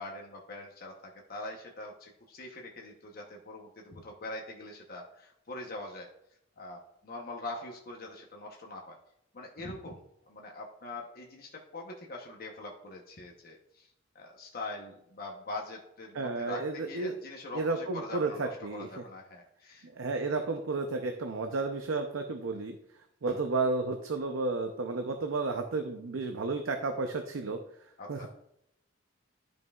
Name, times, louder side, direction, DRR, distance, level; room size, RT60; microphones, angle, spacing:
voice 1, 0.0-6.1 6.6-9.0 9.3-10.0 10.3-13.9 14.1-19.9 20.3-20.4 23.2-23.4 28.0-28.3, left 2 dB, 50° left, 1 dB, 0.9 m, -43 dB
voice 2, 16.1-17.1 17.5-18.9 19.8-22.8 23.2-27.6 28.1-28.3, right 3 dB, 85° right, 5 dB, 0.6 m, -32 dB
12.5 x 5.3 x 2.4 m, 0.79 s
head